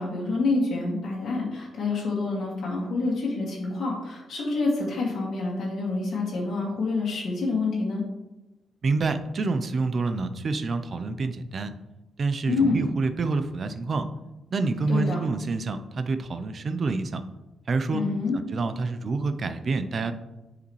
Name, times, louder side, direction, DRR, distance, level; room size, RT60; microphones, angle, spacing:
voice 1, 0.0-8.0 12.5-12.8 14.9-15.2 17.9-18.4, left 3 dB, 60° left, -5 dB, 2.1 m, -27 dB
voice 2, 8.8-11.7 12.2-14.1 14.5-17.2 17.7-18.0 18.3-20.1, right 3 dB, 40° right, 9 dB, 0.5 m, -27 dB
9.9 x 4.9 x 3.1 m, 1.0 s
cardioid pair, 145°, 0 cm